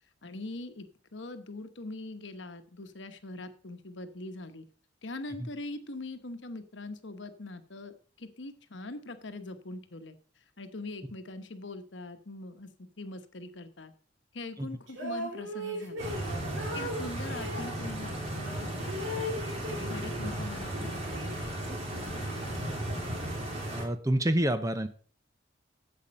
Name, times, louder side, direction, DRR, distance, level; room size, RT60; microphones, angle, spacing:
voice 1, 0.2-4.6 5.0-10.1 10.6-12.7 13.0-13.9 14.3-16.2 16.7-19.4 19.8-22.6, left 2 dB, 65° left, 9 dB, 1.1 m, -42 dB
sound 1, 14.9-17.8 18.4-20.4 20.7-21.8, equal, 70° right, 2.7 m, -38 dB
Stream, 16.0-23.8, right 1 dB, 35° right, 2.9 m, -35 dB
voice 2, 23.7-24.9, right 1 dB, 15° right, 11 dB, 0.6 m, -28 dB
8.6 x 7.4 x 5.3 m, 0.43 s
head